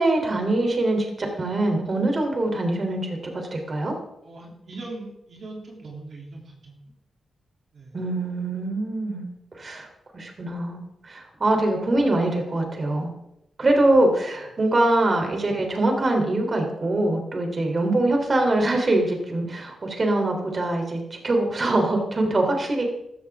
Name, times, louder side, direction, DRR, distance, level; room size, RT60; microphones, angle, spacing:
voice 1, 0.0-3.9 7.9-9.2 9.6-9.9 10.1-13.1 13.6-22.8, right 2 dB, 40° right, 2 dB, 3.4 m, -23 dB
voice 2, 4.2-6.9 7.7-8.0, right 2 dB, 60° right, -2 dB, 3.1 m, -40 dB
15.5 x 13.5 x 3.7 m, 0.82 s
cardioid pair, 95°, 0 cm